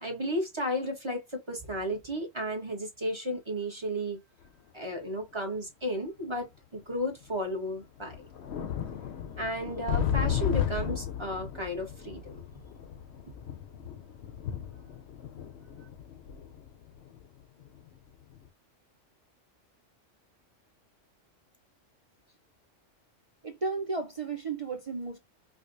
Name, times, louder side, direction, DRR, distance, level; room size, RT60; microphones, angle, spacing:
voice 1, 0.0-4.2 4.7-8.3 9.4-12.4, equal, 25° right, 1.1 m, -33 dB
sound 1, 4.4-4.5 5.5-5.6 6.8-6.9 7.2-7.3 7.8-17.9 18.3-18.5, left 8 dB, 65° left, 0.8 m, -34 dB
voice 2, 23.4-25.2, right 4 dB, 50° right, 0.4 m, -33 dB
4.9 x 2.2 x 2.5 m
omnidirectional pair, 1.3 m